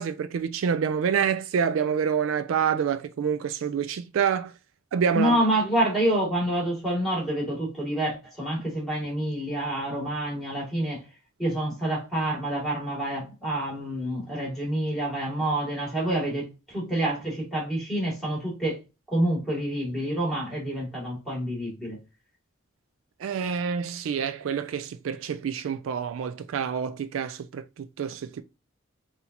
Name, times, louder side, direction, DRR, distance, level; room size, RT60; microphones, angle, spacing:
voice 1, 0.0-4.5 4.9-5.4 23.2-28.4, right 7 dB, 70° right, 0.3 m, -27 dB
voice 2, 5.1-11.0 11.4-18.8 19.1-22.0, right 1 dB, ahead, 2.3 m, -27 dB
5.7 x 2.7 x 2.8 m
head